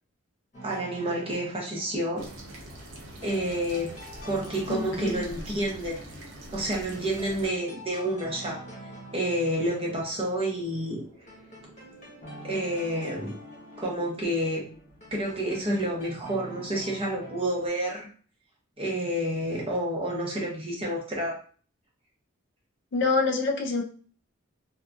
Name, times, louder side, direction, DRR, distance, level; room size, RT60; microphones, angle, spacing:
sound 1, 0.5-17.7, equal, 35° left, 1.0 m, -46 dB
voice 1, 0.6-2.3 3.2-3.9 4.3-6.0 6.5-8.6 9.1-11.0 12.4-13.3 13.8-14.6 15.1-18.1 18.8-21.4, right 1 dB, 25° right, -2 dB, 0.7 m, -29 dB
sound 2, 2.2-7.5, right 1 dB, 65° right, 0.7 m, -44 dB
voice 2, 4.7-5.2 22.9-23.8, left 4 dB, 55° left, 2 dB, 0.5 m, -26 dB
2.8 x 2.5 x 2.3 m, 0.42 s
head